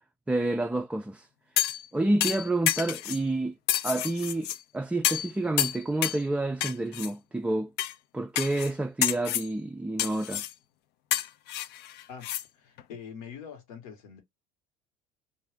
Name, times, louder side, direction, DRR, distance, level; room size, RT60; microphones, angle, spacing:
voice 1, 0.3-1.3 1.9-3.5 3.8-7.7 8.1-10.4, right 2 dB, 5° right, 0.3 m, -29 dB
sound 1, 1.6-1.9 2.2-3.2 3.7-4.6 5.0-5.3 5.6-6.2 6.6-7.1 7.8-7.9 8.4-8.7 9.0-9.5 10.0-10.5 11.1-12.4 12.8-12.9, left 12 dB, 65° left, 0.5 m, -29 dB
voice 2, 12.1-14.2, left 7 dB, 80° left, 1.3 m, -44 dB
2.6 x 2.4 x 3.4 m
hypercardioid pair, 75°, 19 cm